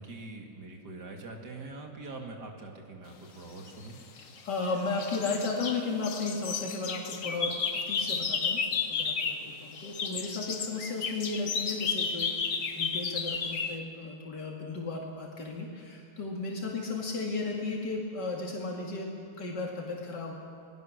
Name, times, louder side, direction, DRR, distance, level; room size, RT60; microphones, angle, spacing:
voice 1, 0.0-4.0, right 3 dB, 75° right, 2 dB, 2.9 m, -43 dB
sound 1, 3.8-4.7 5.0-9.5 9.7-13.8, left 5 dB, 55° left, 1.5 m, -32 dB
voice 2, 4.4-8.6 8.9-19.1 19.4-20.4, left 3 dB, 85° left, -1 dB, 3.0 m, -34 dB
27.0 x 19.5 x 6.6 m, 2.4 s
omnidirectional pair, 1.8 m